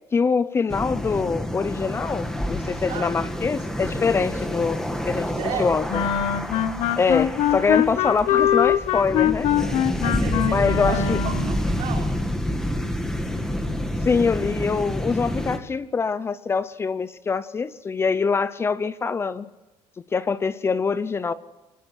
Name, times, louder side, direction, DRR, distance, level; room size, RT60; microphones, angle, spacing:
voice 1, 0.1-5.3 5.6-6.0 7.0-9.5 10.5-11.2 14.0-19.5 20.1-21.3, left 5 dB, 25° left, 16 dB, 0.6 m, -24 dB
sound 1, 0.7-15.6, equal, 5° left, 2.1 m, -28 dB
voice 2, 5.4-5.8 10.0-12.1, right 6 dB, 65° right, -1 dB, 6.1 m, -33 dB
sound 2, 5.9-11.6, left 10 dB, 75° left, 1.3 m, -23 dB
23.0 x 20.0 x 6.1 m, 1.1 s
cardioid pair, 135°, 10 cm